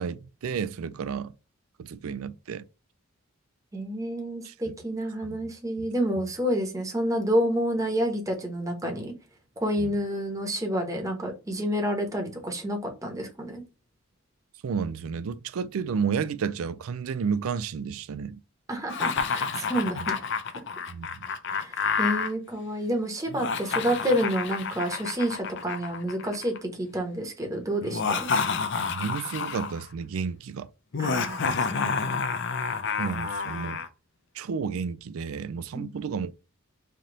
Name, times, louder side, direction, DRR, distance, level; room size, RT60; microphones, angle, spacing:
voice 1, 0.0-1.3 1.8-2.7 4.4-4.7 5.3-5.4 5.8-5.9 9.8-9.9 14.6-18.4 20.0-20.1 20.9-21.3 28.0-28.2 28.9-30.7 33.0-33.8 34.3-36.3, right 6 dB, 75° right, 0.4 m, -32 dB
voice 2, 3.7-9.1 9.6-13.6 18.7-20.2 21.5-28.3 31.0-32.0 35.7-35.9, equal, 15° right, 1.0 m, -29 dB
Laughter, 18.9-22.3 23.3-26.6 27.8-29.8 30.9-33.9, left 5 dB, 55° left, 0.5 m, -29 dB
3.3 x 2.8 x 3.7 m
head